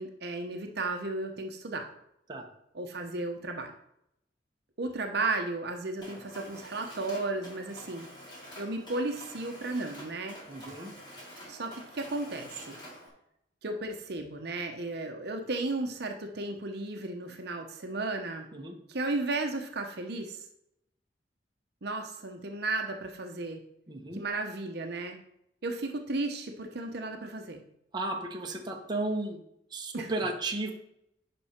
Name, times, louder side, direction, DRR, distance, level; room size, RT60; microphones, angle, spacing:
voice 1, 0.0-1.9 2.7-3.7 4.8-8.1 8.6-10.4 11.5-12.8 13.6-18.5 18.9-20.4 21.8-23.6 24.1-25.2 25.6-27.6 29.9-30.1, right 2 dB, 65° right, 4 dB, 0.9 m, -34 dB
Mechanisms, 6.0-13.1, equal, 25° left, 2.9 m, -48 dB
voice 2, 10.5-10.9 18.5-18.7 23.9-24.2 27.9-29.4 29.7-30.7, right 2 dB, 25° right, 1 dB, 1.2 m, -34 dB
10.5 x 5.4 x 4.4 m, 0.78 s
head